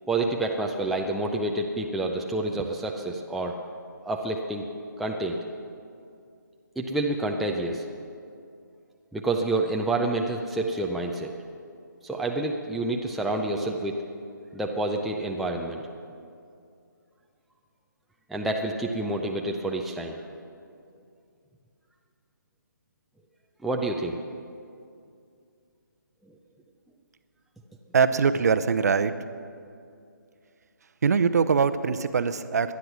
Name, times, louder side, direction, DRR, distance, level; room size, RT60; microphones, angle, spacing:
voice 1, 0.1-3.6 4.1-4.7 5.0-5.4 6.8-7.8 9.1-11.3 12.0-14.0 14.5-15.8 18.3-20.2 23.6-24.2, right 2 dB, ahead, 0 dB, 0.4 m, -28 dB
voice 2, 27.9-29.1 31.0-32.7, right 5 dB, 50° right, 13 dB, 0.7 m, -22 dB
18.0 x 11.0 x 6.1 m, 2.4 s
figure-of-eight pair, 145°, 11 cm